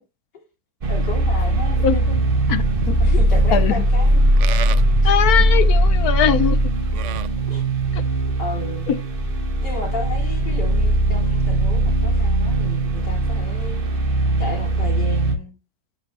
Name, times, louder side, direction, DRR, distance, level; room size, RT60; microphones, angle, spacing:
sound 1, 0.8-15.4, right 1 dB, 35° right, 1.3 m, -19 dB
voice 1, 0.9-2.2 3.0-4.3 5.4-5.5 7.5-7.6 8.4-8.9 9.6-13.8 14.4-15.5, left 2 dB, 85° left, 3.4 m, -33 dB
Livestock farm animals working animals, 1.4-7.3, right 11 dB, 70° right, 0.7 m, -31 dB
voice 2, 3.5-3.8 5.0-6.6 7.9-8.0 8.9-9.0, left 9 dB, 70° left, 1.2 m, -20 dB
11.0 x 5.2 x 2.9 m
omnidirectional pair, 1.8 m